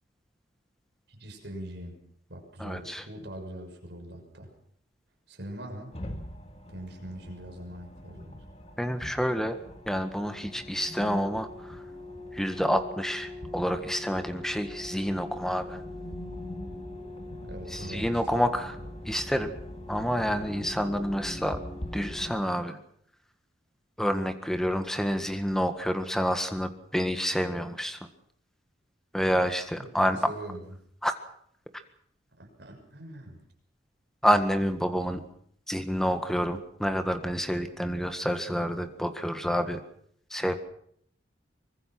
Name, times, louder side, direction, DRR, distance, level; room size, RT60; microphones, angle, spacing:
voice 1, 1.1-2.0 2.3-4.5 5.3-5.9 6.7-8.4 17.4-18.5 29.8-30.8 32.4-33.4, right 1 dB, 60° right, 2 dB, 6.4 m, -42 dB
voice 2, 2.6-3.0 8.8-9.6 9.9-11.8 12.3-15.8 17.7-18.7 19.1-19.5 19.9-21.6 21.9-22.8 24.0-28.0 29.1-30.3 31.0-31.1 34.2-35.2 35.7-39.8 40.3-40.6, equal, 5° left, 8 dB, 1.7 m, -28 dB
sound 1, 5.9-22.3, left 1 dB, 35° left, 2.2 m, -41 dB
24.0 x 21.0 x 6.1 m, 0.66 s
head